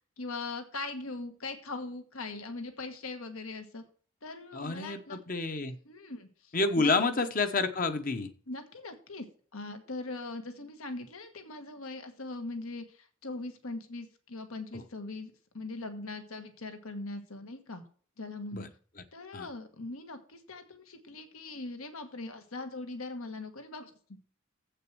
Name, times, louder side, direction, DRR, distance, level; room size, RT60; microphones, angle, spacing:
voice 1, 0.2-3.8 4.2-5.2 5.8-7.0 8.5-9.3 9.5-17.8 18.2-18.7 19.1-24.2, left 3 dB, 75° left, 7 dB, 1.5 m, -41 dB
voice 2, 4.5-5.8 6.5-8.3 14.7-14.8 18.5-18.7 19.3-19.5, left 3 dB, 40° left, 8 dB, 0.9 m, -29 dB
7.9 x 6.7 x 6.2 m, 0.43 s
head